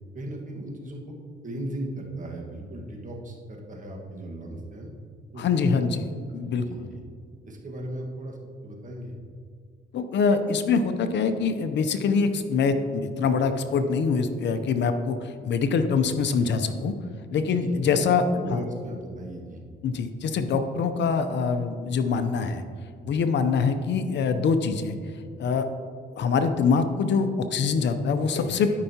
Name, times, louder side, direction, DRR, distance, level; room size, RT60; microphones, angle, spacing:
voice 1, 0.1-1.2 1.4-4.9 5.3-5.9 6.5-7.0 7.4-8.4 8.6-9.1 17.3-19.6, right 1 dB, 40° right, 0 dB, 1.6 m, -37 dB
voice 2, 5.4-6.1 6.3-6.7 9.9-16.9 17.3-18.2 18.5-18.6 19.8-22.6 23.0-24.9 25.4-25.7 26.2-28.8, left 5 dB, 65° left, 9 dB, 0.6 m, -24 dB
12.5 x 5.5 x 2.9 m, 2.2 s
cardioid pair, 90°, 20 cm